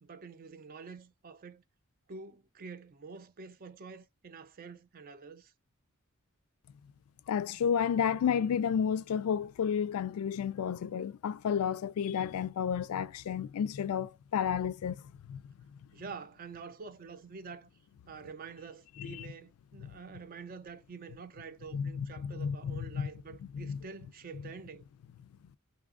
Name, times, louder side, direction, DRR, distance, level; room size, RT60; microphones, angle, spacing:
voice 1, 0.0-1.6 2.1-5.5 15.9-17.7 18.1-24.8, right 5 dB, 40° right, 0.4 m, -47 dB
voice 2, 7.3-15.4 19.0-19.3 19.8-19.9 21.7-23.1 23.5-23.8, left 7 dB, 80° left, 0.3 m, -31 dB
2.8 x 2.4 x 3.6 m
head